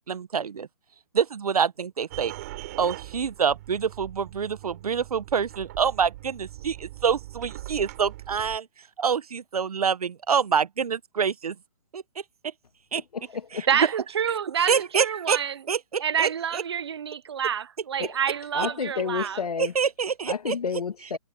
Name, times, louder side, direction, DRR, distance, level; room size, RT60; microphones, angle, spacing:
voice 1, 0.1-0.7 1.1-2.3 2.8-8.7 9.0-11.5 11.9-12.0 12.9-13.0 13.5-13.9 14.7-15.4 15.7-16.6 19.6-20.6, right 6 dB, 75° right, 1.3 m, -26 dB
sound 1, 2.1-8.6, right 17 dB, 25° right, 3.6 m, -41 dB
voice 2, 13.1-13.7 18.0-18.1 18.5-19.7 20.3-21.2, left 6 dB, 85° left, 1.7 m, -30 dB
voice 3, 13.7-15.6 16.0-19.4, right 8 dB, 45° right, 0.6 m, -27 dB
hypercardioid pair, 175°, 19 cm